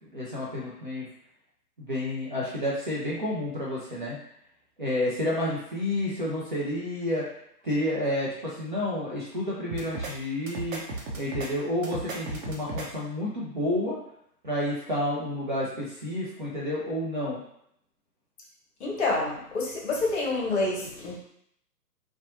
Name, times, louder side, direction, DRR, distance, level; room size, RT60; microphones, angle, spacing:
voice 1, 0.1-1.0 1.8-4.2 4.8-7.3 7.6-10.8 11.2-14.0 14.4-17.4, left 1 dB, 35° right, -6 dB, 0.4 m, -30 dB
sound 1, 9.7-10.1 10.5-11.5 11.8-12.9, right 2 dB, 55° right, 0.8 m, -35 dB
voice 2, 18.8-21.2, left 2 dB, 45° left, -3 dB, 0.8 m, -28 dB
2.6 x 2.2 x 2.6 m, 0.70 s
figure-of-eight pair, 125°, 49 cm